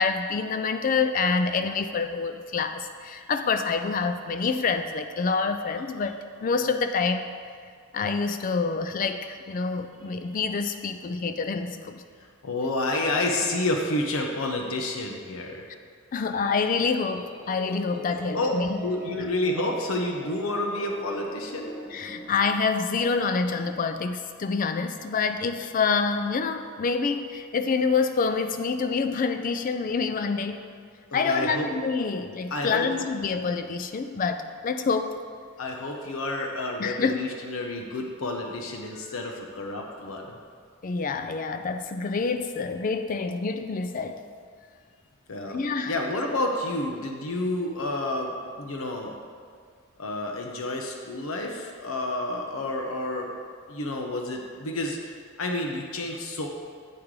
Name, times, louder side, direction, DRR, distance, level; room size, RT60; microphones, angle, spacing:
voice 1, 0.0-7.3 7.9-12.0 16.1-18.9 21.9-30.6 31.1-35.2 36.8-37.2 40.8-44.2 45.5-46.0, left 4 dB, 40° left, 8 dB, 0.3 m, -27 dB
voice 2, 12.4-15.7 18.3-18.5 18.8-21.7 31.1-31.7 32.5-32.9 35.6-40.4 45.3-49.1 50.0-53.3 53.7-56.5, left 2 dB, 70° left, 1 dB, 0.7 m, -30 dB
sound 1, 16.3-22.3, right 1 dB, 20° left, 0.7 m, -42 dB
8.5 x 3.7 x 4.7 m, 2.1 s
head